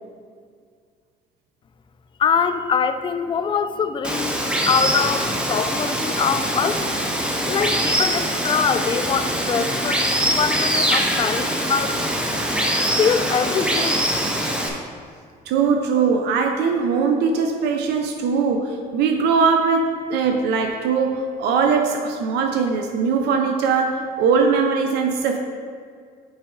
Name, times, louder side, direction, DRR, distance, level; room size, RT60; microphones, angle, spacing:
voice 1, 2.2-6.8 7.5-12.1 12.8-14.1, left 6 dB, 30° left, 9 dB, 0.4 m, -23 dB
Water, 4.0-14.7, equal, 5° right, 0.8 m, -23 dB
voice 2, 15.5-25.4, right 5 dB, 80° right, 4 dB, 0.6 m, -20 dB
7.1 x 4.9 x 3.8 m, 2.1 s
cardioid pair, 110°, 17 cm